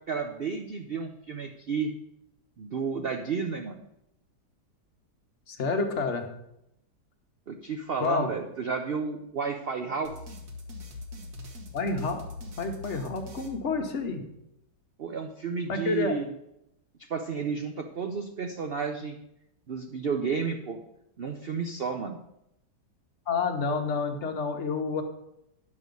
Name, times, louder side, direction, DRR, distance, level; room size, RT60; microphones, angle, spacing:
voice 1, 0.1-1.9 2.6-3.8 7.5-10.1 15.0-16.3 17.0-19.2 19.7-20.8 21.2-22.2, right 5 dB, 85° right, 4 dB, 0.5 m, -32 dB
voice 2, 5.5-6.3 8.0-8.3 11.7-12.2 12.6-14.2 15.7-16.2 23.3-25.0, left 4 dB, 45° left, 4 dB, 1.2 m, -29 dB
sound 1, 10.0-14.3, left 3 dB, 60° right, 1.7 m, -43 dB
9.7 x 6.3 x 5.3 m, 0.81 s
omnidirectional pair, 1.9 m